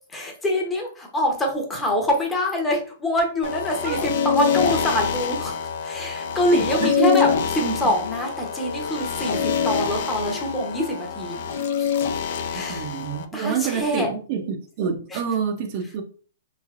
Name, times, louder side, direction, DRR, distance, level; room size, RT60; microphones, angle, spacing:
voice 1, 0.1-4.0 4.2-5.5 5.8-7.3 7.7-11.4 11.8-11.9 12.5-12.9 13.3-14.1 15.1-15.2, left 1 dB, 10° left, 0.8 m, -25 dB
sound 1, 3.4-13.2, left 7 dB, 60° left, 0.4 m, -25 dB
sound 2, 6.4-12.2, left 4 dB, 75° left, 1.1 m, -42 dB
voice 2, 6.5-7.2 7.6-7.8 12.5-16.0, right 7 dB, 45° right, 0.6 m, -27 dB
3.2 x 2.6 x 2.4 m
hypercardioid pair, 140°, 0 cm